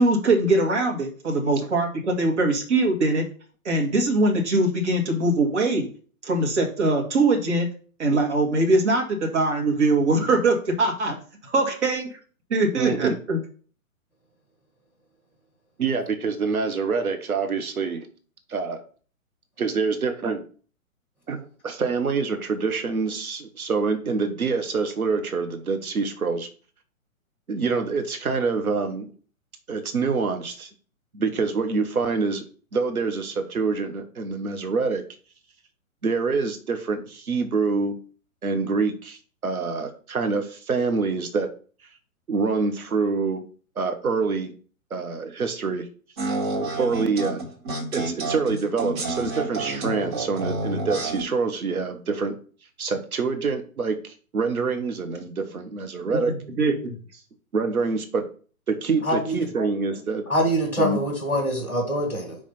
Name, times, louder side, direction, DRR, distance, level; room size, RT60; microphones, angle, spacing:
voice 1, 0.0-3.2 3.7-5.9 6.2-7.7 8.0-11.2 11.5-12.0 12.5-13.4 56.3-56.9, right 2 dB, 50° right, 0 dB, 1.9 m, -22 dB
voice 2, 12.7-13.2 15.8-18.1 18.5-18.8 19.6-20.4 21.3-26.5 27.5-29.1 29.7-30.7 31.1-32.4 32.7-35.0 36.0-38.0 38.4-41.5 42.3-43.4 43.8-44.6 44.9-45.9 46.8-47.5 47.9-52.4 52.8-56.3 57.5-58.3 58.7-60.3 60.8-61.0, right 4 dB, 80° right, 6 dB, 0.9 m, -26 dB
sound 1, 46.2-51.2, right 2 dB, 35° right, 2.1 m, -29 dB
voice 3, 60.3-62.3, equal, 5° right, -3 dB, 1.5 m, -24 dB
5.4 x 3.3 x 5.4 m, 0.40 s
figure-of-eight pair, 120°, 42 cm